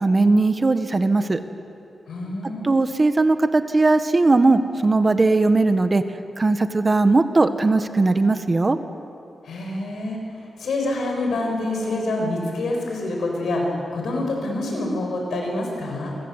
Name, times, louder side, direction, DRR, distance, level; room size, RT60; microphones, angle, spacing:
voice 1, 0.0-1.4 2.6-6.0 6.4-8.8, right 3 dB, 30° right, 8 dB, 1.5 m, -18 dB
voice 2, 2.1-2.7 9.4-10.2 10.6-16.2, left 2 dB, 85° left, 1 dB, 7.4 m, -26 dB
29.0 x 24.0 x 8.3 m, 2.7 s
wide cardioid pair, 100°, 0 cm